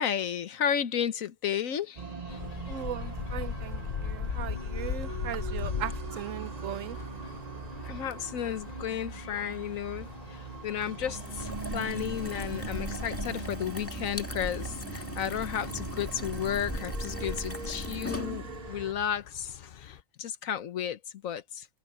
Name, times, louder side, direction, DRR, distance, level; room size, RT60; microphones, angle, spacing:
voice 1, 0.0-2.4 7.8-21.7, left 9 dB, 85° left, 1.4 m, -33 dB
sound 1, 2.0-18.9, right 5 dB, 40° right, 0.7 m, -41 dB
sound 2, 2.3-20.0, left 8 dB, 50° left, 0.6 m, -41 dB
voice 2, 2.7-7.0, right 10 dB, 75° right, 1.1 m, -38 dB
sound 3, 11.1-18.7, left 1 dB, 10° left, 2.1 m, -39 dB
open air
omnidirectional pair, 1.4 m